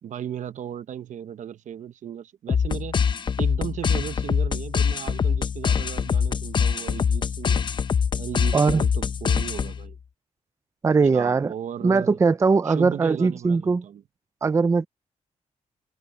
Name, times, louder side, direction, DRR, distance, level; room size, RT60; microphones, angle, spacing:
voice 1, 0.0-3.0 3.4-7.6 8.2-10.0 11.1-12.2 12.7-14.0, right 9 dB, 75° right, 0.9 m, -36 dB
sound 1, 2.5-9.9, left 6 dB, 40° left, 0.6 m, -24 dB
voice 2, 8.5-8.8 10.8-11.5 11.8-13.8 14.4-14.9, right 4 dB, 25° right, 0.5 m, -20 dB
open air
wide cardioid pair, 160°, 13 cm